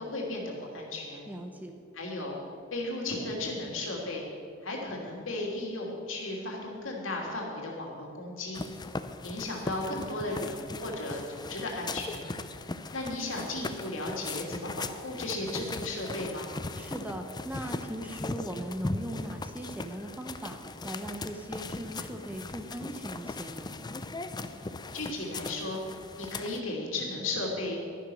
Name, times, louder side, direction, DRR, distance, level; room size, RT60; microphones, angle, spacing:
voice 1, 0.0-1.3 1.9-2.4 2.7-4.2 4.6-8.6 9.2-12.3 12.9-16.5 24.9-27.8, left 2 dB, 70° left, -1 dB, 2.8 m, -35 dB
voice 2, 1.3-1.8 16.8-20.6 20.8-23.7, right 1 dB, 10° right, 5 dB, 0.8 m, -39 dB
sound 1, 8.5-26.6, left 3 dB, 20° left, 0.5 m, -39 dB
12.5 x 10.0 x 6.3 m, 2.3 s
head